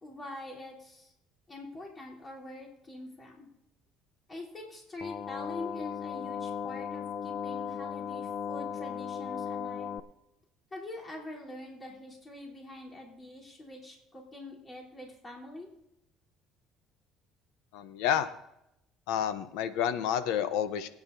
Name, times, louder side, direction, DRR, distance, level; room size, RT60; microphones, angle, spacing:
voice 1, 0.0-1.1 1.5-3.5 4.3-10.0 10.7-15.7, left 2 dB, 25° left, -4 dB, 3.4 m, -44 dB
sound 1, 5.0-10.0, left 7 dB, 40° left, 0.6 m, -36 dB
voice 2, 17.7-18.3 19.1-20.9, left 9 dB, 85° left, 12 dB, 0.7 m, -29 dB
22.5 x 9.3 x 2.7 m, 0.82 s
cardioid pair, 105°, 0 cm